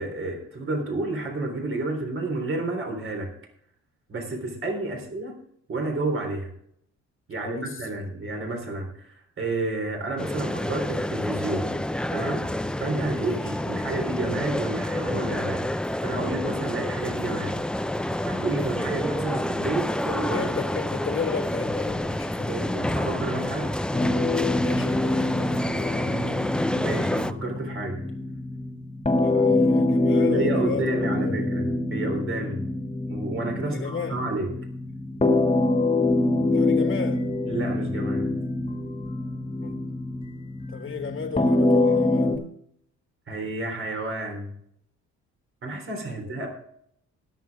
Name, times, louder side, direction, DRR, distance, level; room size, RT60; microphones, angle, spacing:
voice 1, 0.0-3.3 4.1-5.3 5.7-6.5 7.3-11.8 12.1-17.6 18.3-20.6 22.5-23.7 25.9-28.1 30.2-32.7 33.1-34.5 37.4-38.3 43.3-44.5 45.6-46.5, right 2 dB, 45° right, 3.5 m, -31 dB
voice 2, 7.4-7.8 13.1-13.5 20.3-22.5 24.6-25.7 29.2-30.8 31.2-31.5 33.6-34.2 36.5-37.3 39.6-39.8 40.7-42.4 46.1-46.4, left 6 dB, 40° left, 1.8 m, -34 dB
sound 1, 10.2-27.3, left 1 dB, 5° left, 0.5 m, -29 dB
sound 2, 23.9-42.4, left 2 dB, 20° left, 1.9 m, -25 dB
22.0 x 7.3 x 3.5 m
cardioid pair, 90°, 30 cm